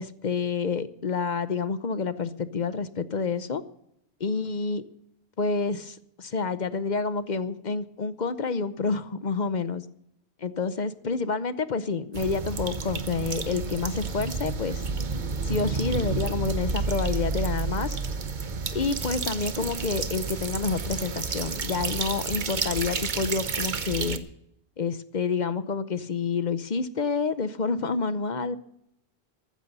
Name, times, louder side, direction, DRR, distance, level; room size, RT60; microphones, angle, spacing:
voice 1, 0.0-3.6 4.2-4.8 5.4-9.8 10.4-14.8 15.4-18.0 18.7-24.3 24.8-28.6, left 4 dB, 45° left, 13 dB, 0.8 m, -28 dB
sound 1, 12.1-24.2, right 4 dB, 50° right, 1.1 m, -30 dB
14.5 x 12.5 x 5.4 m, 0.78 s
omnidirectional pair, 1.1 m